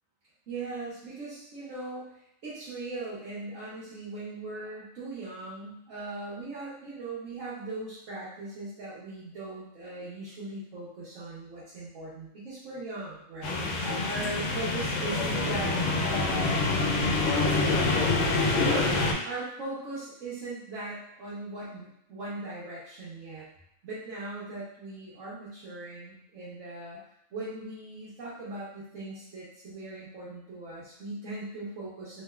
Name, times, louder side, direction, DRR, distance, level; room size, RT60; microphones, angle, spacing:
voice 1, 0.5-2.1 2.4-15.8 16.0-16.7 18.4-19.0 19.2-23.5 23.8-27.0 27.3-32.2, right 2 dB, 80° right, -10 dB, 1.2 m, -39 dB
sound 1, 13.4-19.1, left 3 dB, 75° left, 0.9 m, -26 dB
3.2 x 2.8 x 2.3 m, 0.77 s
omnidirectional pair, 1.3 m